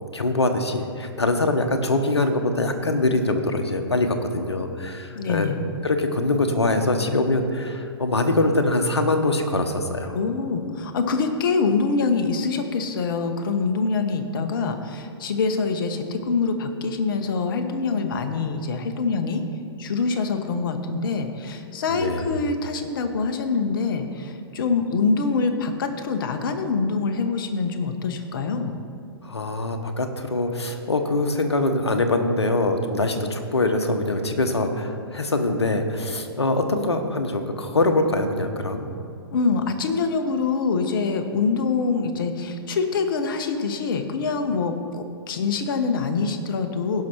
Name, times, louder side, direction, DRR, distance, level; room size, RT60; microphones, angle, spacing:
voice 1, 0.1-4.1 4.3-5.5 5.8-10.1 21.9-22.3 29.2-38.9, left 2 dB, 80° left, 6 dB, 1.1 m, -23 dB
voice 2, 5.1-5.6 10.1-19.4 19.8-28.8 39.3-47.0, left 4 dB, 55° left, 7 dB, 1.1 m, -25 dB
16.5 x 5.9 x 4.4 m, 2.3 s
figure-of-eight pair, 115°, 14 cm